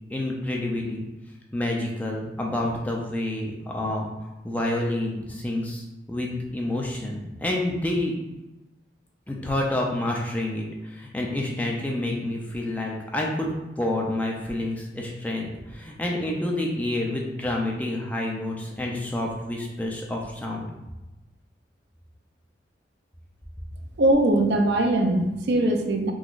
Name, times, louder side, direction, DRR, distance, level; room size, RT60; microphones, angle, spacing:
voice 1, 0.1-1.1 1.5-4.1 4.4-8.1 9.3-20.6, left 1 dB, 10° left, -2 dB, 0.4 m, -28 dB
voice 2, 24.0-26.1, right 1 dB, 80° right, 5 dB, 0.4 m, -21 dB
3.8 x 3.0 x 2.4 m, 1.0 s
head